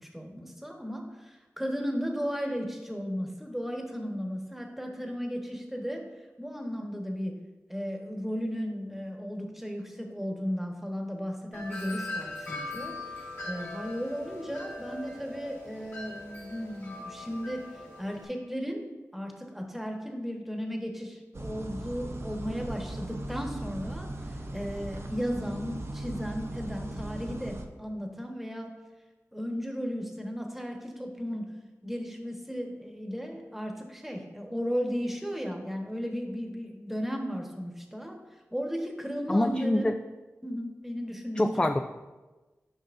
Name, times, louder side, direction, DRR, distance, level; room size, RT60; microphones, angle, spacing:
voice 1, 0.0-6.0 6.4-7.3 7.7-12.9 13.4-18.8 19.1-28.7 29.3-31.5 31.8-38.1 38.5-39.9 40.4-41.7, equal, 5° right, 1 dB, 1.3 m, -35 dB
Wind chime, 11.5-18.2, left 2 dB, 40° left, 2.3 m, -40 dB
sound 1, 21.3-27.7, right 1 dB, 50° right, 0.7 m, -38 dB
voice 2, 39.3-39.9 41.4-41.8, left 1 dB, 15° left, 7 dB, 0.3 m, -25 dB
10.5 x 5.4 x 2.6 m, 1.2 s
cardioid pair, 50°, 6 cm